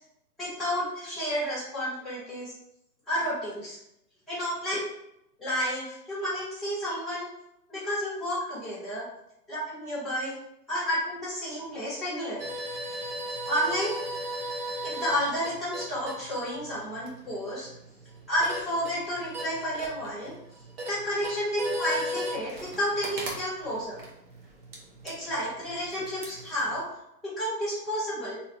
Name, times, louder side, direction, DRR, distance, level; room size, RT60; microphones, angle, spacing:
voice 1, 0.4-2.5 3.1-3.8 4.3-4.9 5.4-7.3 7.7-9.1 9.5-10.4 10.7-12.5 13.5-14.0 14.8-17.7 18.3-20.3 20.9-24.0 25.0-28.4, equal, ahead, -12 dB, 0.3 m, -31 dB
sound 1, 12.4-26.8, equal, 35° right, 0.8 m, -38 dB
3.4 x 2.7 x 2.8 m, 0.82 s
hypercardioid pair, 140°, 49 cm